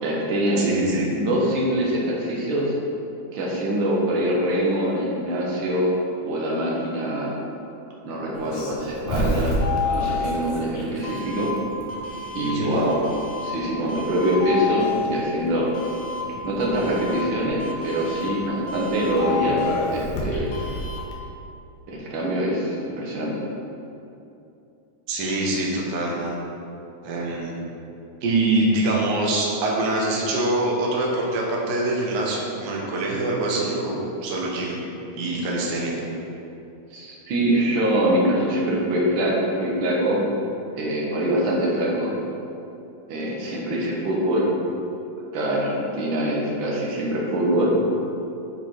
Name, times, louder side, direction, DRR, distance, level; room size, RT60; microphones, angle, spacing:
voice 1, 0.0-0.7 1.0-2.7 3.3-5.9 6.2-7.3 8.0-9.5 9.9-11.5 12.3-13.0 13.4-15.7 16.4-19.6 19.9-20.5 21.9-23.4 36.9-40.2 40.7-42.1 43.1-44.4 45.3-47.7, right 1 dB, 60° right, -3 dB, 1.4 m, -24 dB
voice 2, 0.6-1.1 12.4-12.7 25.1-26.3 27.0-27.5 28.2-34.8 35.2-35.9, right 2 dB, 90° right, -3 dB, 0.9 m, -24 dB
Doorbell, 8.3-21.1, left 2 dB, 70° left, 2.3 m, -29 dB
8.8 x 5.1 x 4.5 m, 2.8 s
omnidirectional pair, 3.7 m